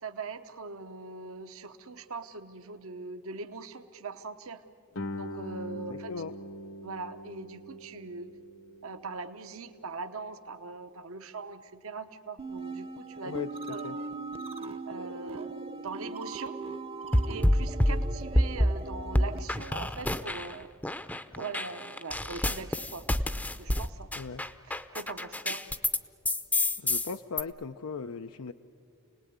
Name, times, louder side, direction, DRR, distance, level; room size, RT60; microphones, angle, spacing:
voice 1, 0.0-4.6 5.2-6.1 6.8-8.3 8.8-13.3 13.7-14.0 14.9-16.6 17.3-20.7 21.3-23.1 23.6-24.1 24.7-25.6, right 4 dB, 70° right, 8 dB, 1.0 m, -41 dB
Guitar, 4.9-10.3, left 1 dB, 65° left, 1.1 m, -42 dB
voice 2, 5.9-6.4 13.2-14.0 24.2-24.4 25.4-25.6 26.8-28.5, left 5 dB, 85° left, 7 dB, 0.6 m, -38 dB
sound 1, 12.4-19.4, right 3 dB, 25° right, 0.8 m, -39 dB
sound 2, 17.1-18.8 19.1-20.5 20.8-26.0 26.2-27.4, left 1 dB, 5° left, 0.6 m, -27 dB
29.0 x 19.0 x 9.5 m, 2.4 s
head